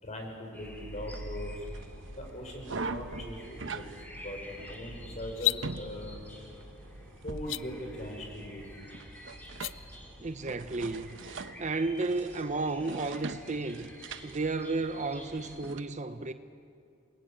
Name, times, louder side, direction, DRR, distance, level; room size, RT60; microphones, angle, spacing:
voice 1, 0.0-1.7 2.2-3.9 4.2-6.2 7.2-8.6, left 1 dB, 40° left, 5.4 m, -40 dB
sound 1, 0.5-15.7, left 1 dB, 10° left, 3.4 m, -51 dB
sound 2, 0.6-15.8, right 3 dB, 75° right, 1.0 m, -43 dB
sound 3, 5.3-5.6 7.4-7.6 9.4-9.7, left 19 dB, 70° left, 0.6 m, -29 dB
voice 2, 10.2-11.2 11.6-13.9 14.2-16.3, right 3 dB, 40° right, 0.9 m, -33 dB
28.5 x 22.0 x 8.9 m
head